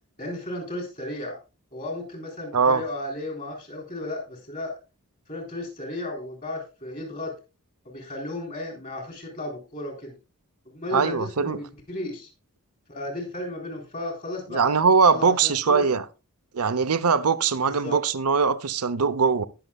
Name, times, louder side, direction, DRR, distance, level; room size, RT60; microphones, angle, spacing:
voice 1, 0.2-1.4 1.7-4.7 5.3-7.3 7.8-10.2 10.7-12.3 12.9-14.7 15.1-15.8 17.7-18.0, left 1 dB, 35° left, 4.0 m, -34 dB
voice 2, 2.5-2.8 10.9-11.6 14.5-16.1 16.5-19.4, right 5 dB, 90° right, 0.8 m, -21 dB
19.0 x 6.7 x 2.4 m
head